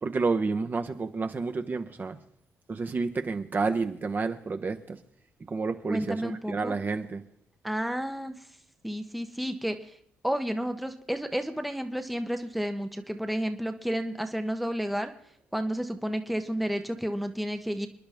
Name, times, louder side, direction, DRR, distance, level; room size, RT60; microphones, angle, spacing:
voice 1, 0.0-2.2 2.7-5.0 5.5-7.2, right 4 dB, 35° right, 0.9 m, -30 dB
voice 2, 5.9-6.7 7.6-8.5 8.8-10.0 10.2-15.1 15.5-17.9, equal, ahead, 0.9 m, -31 dB
28.0 x 10.5 x 3.5 m
cardioid pair, 105°, 6 cm